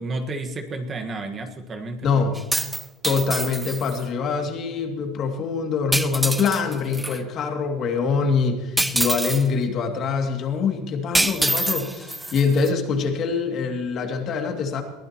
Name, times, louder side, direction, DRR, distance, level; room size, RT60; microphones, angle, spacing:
voice 1, 0.0-2.2, right 2 dB, 25° right, 5 dB, 1.5 m, -31 dB
voice 2, 2.0-2.4 3.0-14.8, left 5 dB, 40° left, 4 dB, 2.4 m, -24 dB
sound 1, 2.3-4.0 5.9-7.2 8.8-9.5 11.1-12.7, right 1 dB, 5° right, 0.5 m, -25 dB
22.5 x 15.0 x 3.0 m, 1.2 s
supercardioid pair, 125°, 0 cm